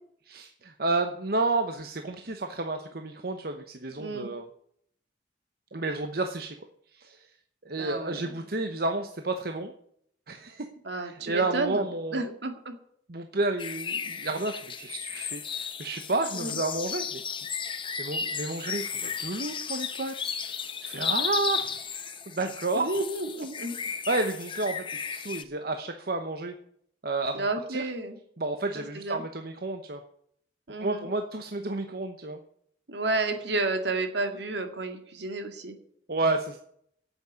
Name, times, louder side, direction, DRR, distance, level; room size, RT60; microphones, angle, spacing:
voice 1, 0.3-4.4 5.7-6.5 6.9-7.3 7.6-9.7 10.3-10.7 10.9-12.3 13.1-17.2 18.0-23.0 23.8-26.5 27.0-27.9 28.4-30.0 30.8-32.4 36.1-36.6, right 2 dB, 50° right, 6 dB, 0.9 m, -31 dB
voice 2, 3.9-4.3 7.8-8.4 10.8-11.8 12.1-12.8 16.3-16.6 22.7-23.8 27.3-28.2 28.8-29.2 30.7-31.1 32.9-35.8, right 2 dB, 70° right, 6 dB, 2.1 m, -31 dB
sound 1, 13.6-25.4, left 6 dB, 25° left, 0.9 m, -34 dB
9.0 x 8.2 x 9.5 m, 0.67 s
head